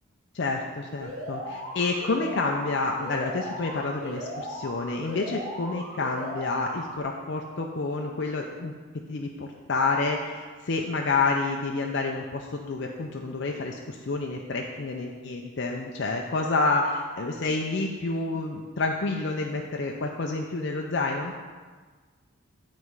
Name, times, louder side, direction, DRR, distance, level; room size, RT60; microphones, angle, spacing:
voice 1, 0.3-8.8 9.1-21.3, left 3 dB, 55° left, 1 dB, 0.5 m, -29 dB
Alarm, 1.0-7.0, equal, 80° right, 2.0 m, -37 dB
10.0 x 4.2 x 4.7 m, 1.4 s
head